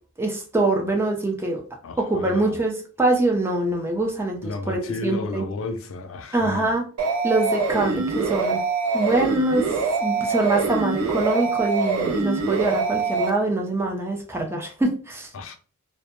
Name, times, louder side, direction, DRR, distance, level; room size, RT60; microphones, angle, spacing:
voice 1, 0.2-1.6 2.0-4.4 4.7-5.4 6.3-6.8 7.2-8.6 8.9-9.8 10.0-15.3, right 2 dB, 10° right, 0.4 m, -24 dB
voice 2, 1.8-2.6 4.4-6.7 15.3-15.5, left 3 dB, 70° left, 0.4 m, -32 dB
sound 1, 7.0-13.3, right 4 dB, 85° right, 0.5 m, -24 dB
2.1 x 2.0 x 2.9 m
head